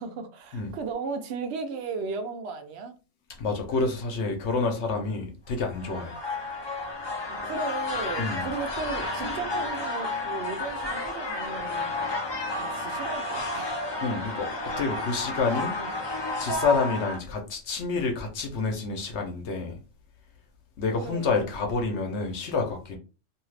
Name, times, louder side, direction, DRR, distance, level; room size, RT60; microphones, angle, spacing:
voice 1, 0.0-3.0 5.0-5.3 5.8-6.2 7.4-11.9 12.6-13.7 15.8-16.0 21.0-21.5, right 4 dB, 65° right, 0.9 m, -36 dB
voice 2, 3.4-6.2 8.2-8.5 14.0-15.8 16.4-19.8 20.8-23.0, left 4 dB, 65° left, 1.0 m, -28 dB
sound 1, 5.6-17.2, left 2 dB, 30° left, 0.5 m, -31 dB
2.7 x 2.4 x 3.2 m
omnidirectional pair, 1.3 m